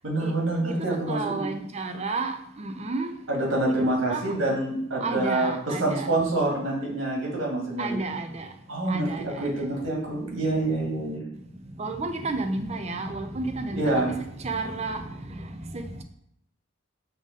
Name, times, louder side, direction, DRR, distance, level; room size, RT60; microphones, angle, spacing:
voice 1, 0.0-1.5 3.3-8.0 8.7-11.2 13.7-14.1, right 2 dB, 70° right, -2 dB, 2.0 m, -26 dB
voice 2, 0.6-3.2 3.7-3.8 4.1-4.3 5.0-6.1 7.8-8.6 8.8-10.1 10.5-16.0, right 3 dB, 30° right, 6 dB, 0.6 m, -33 dB
5.5 x 3.7 x 5.1 m, 0.72 s
head